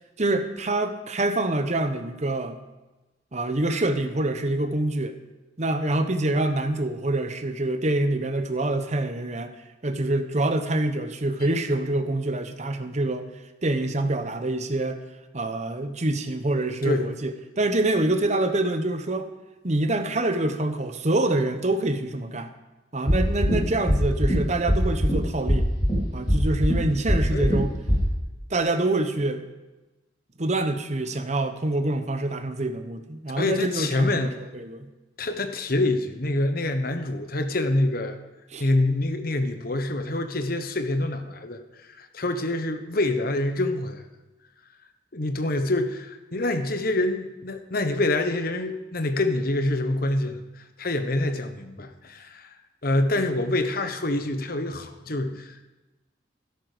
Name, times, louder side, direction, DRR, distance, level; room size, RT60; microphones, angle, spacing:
voice 1, 0.2-2.6 3.3-5.1 5.6-9.5 9.8-13.3 13.6-15.0 15.3-19.3 19.6-22.5 22.9-25.7 26.1-27.7 28.5-29.4 30.4-34.9 38.5-38.6, right 2 dB, 40° right, 8 dB, 1.0 m, -26 dB
sound 1, 23.1-23.5 23.9-24.3 24.7-25.1 25.5-25.9 26.3-26.7 27.1-27.5 27.9-28.0, equal, 30° left, 3.8 m, -21 dB
voice 2, 33.4-34.4 35.2-38.2 38.6-41.6 42.0-44.0 45.1-52.5 52.8-55.7, left 2 dB, 50° left, 8 dB, 1.1 m, -26 dB
13.0 x 11.0 x 5.1 m, 1.1 s
head